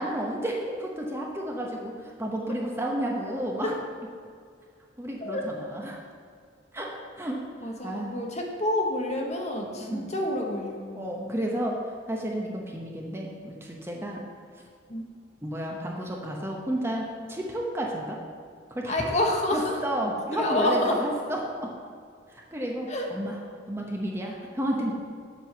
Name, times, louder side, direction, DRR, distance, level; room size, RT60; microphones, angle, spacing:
voice 1, 0.0-3.7 5.0-6.0 6.7-7.4 7.8-8.2 9.8-10.1 10.9-11.8 12.1-14.2 15.4-18.2 18.7-19.1 19.5-21.7 22.3-23.4 23.7-24.9, right 1 dB, 15° right, -1 dB, 0.8 m, -31 dB
voice 2, 7.6-11.1 14.9-15.1 18.9-19.8 20.3-21.0 22.9-23.1, left 1 dB, 35° left, 1 dB, 1.1 m, -28 dB
7.6 x 5.5 x 6.6 m, 2.1 s
head